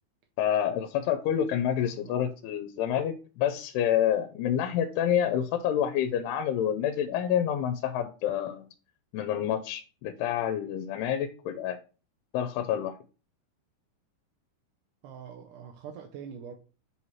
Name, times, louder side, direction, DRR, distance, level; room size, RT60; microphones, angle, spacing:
voice 1, 0.4-8.7 9.1-11.8 12.3-12.9, left 10 dB, 90° left, 9 dB, 2.7 m, -28 dB
voice 2, 1.8-2.2 15.0-16.6, right 7 dB, 85° right, 3 dB, 1.8 m, -44 dB
8.0 x 3.1 x 5.6 m, 0.36 s
omnidirectional pair, 4.5 m